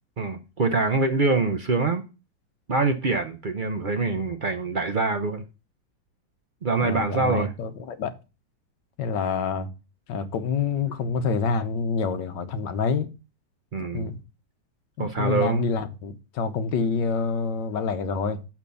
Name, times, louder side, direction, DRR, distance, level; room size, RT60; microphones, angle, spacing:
voice 1, 0.2-2.0 2.7-5.4 6.6-7.5 13.7-14.1 15.0-15.6, right 3 dB, 60° right, 0.5 m, -24 dB
voice 2, 6.8-8.1 9.0-9.7 10.1-13.1 13.9-14.2 15.0-18.4, left 5 dB, 75° left, 1.6 m, -27 dB
6.9 x 5.9 x 6.8 m
omnidirectional pair, 2.0 m